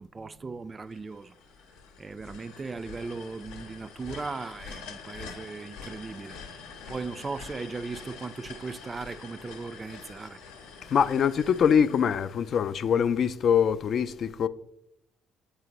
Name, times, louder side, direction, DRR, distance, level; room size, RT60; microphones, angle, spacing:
voice 1, 0.0-1.3 2.0-6.4 6.9-10.4, right 4 dB, 30° right, 0.3 m, -38 dB
sound 1, 0.9-13.0, left 5 dB, 80° left, 0.7 m, -46 dB
voice 2, 10.9-14.5, left 7 dB, 55° left, 0.3 m, -23 dB
7.9 x 4.1 x 2.9 m
hypercardioid pair, 50°, 0 cm